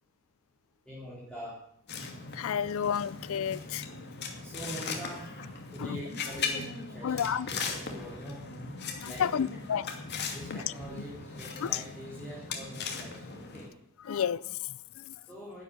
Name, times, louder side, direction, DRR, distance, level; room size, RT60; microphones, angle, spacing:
voice 1, 0.9-1.6 4.4-5.4 5.7-8.5 9.0-9.4 10.3-13.7 15.3-15.6, equal, 5° left, 3.6 m, -44 dB
sound 1, 1.9-13.7, left 4 dB, 50° left, 2.4 m, -39 dB
voice 2, 2.0-3.9 5.8-6.0 7.0-7.5 8.8-9.9 10.4-10.6 11.6-11.8 14.0-15.3, left 8 dB, 65° left, 0.4 m, -32 dB
11.5 x 8.1 x 9.9 m
head